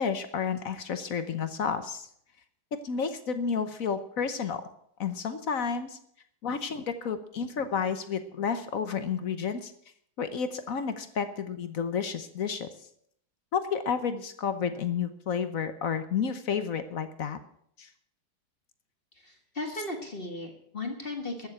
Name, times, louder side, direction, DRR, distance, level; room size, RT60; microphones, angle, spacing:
voice 1, 0.0-2.1 2.7-4.7 5.0-6.0 6.4-9.7 10.2-12.7 13.5-17.4 17.8-17.9, left 6 dB, 55° left, 10 dB, 1.2 m, -31 dB
voice 2, 19.1-21.5, left 2 dB, 30° left, 4 dB, 1.8 m, -36 dB
14.0 x 7.3 x 8.7 m, 0.69 s
omnidirectional pair, 1.9 m